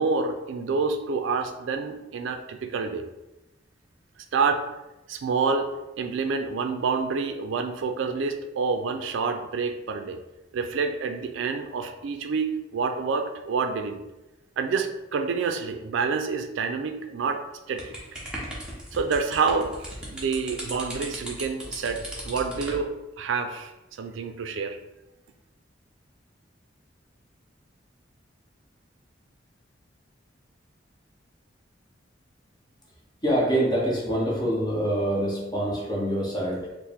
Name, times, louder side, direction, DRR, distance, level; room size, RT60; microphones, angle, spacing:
voice 1, 0.0-3.1 4.3-4.6 5.1-5.7 6.0-10.2 10.5-14.0 14.6-17.4 17.7-17.9 18.9-23.7 24.0-24.8, right 5 dB, 70° right, 6 dB, 0.3 m, -28 dB
sound 1, 17.8-22.8, right 1 dB, 5° right, 0.7 m, -37 dB
voice 2, 33.2-36.7, right 1 dB, 20° left, -3 dB, 0.9 m, -25 dB
4.5 x 2.0 x 3.5 m, 1.0 s
head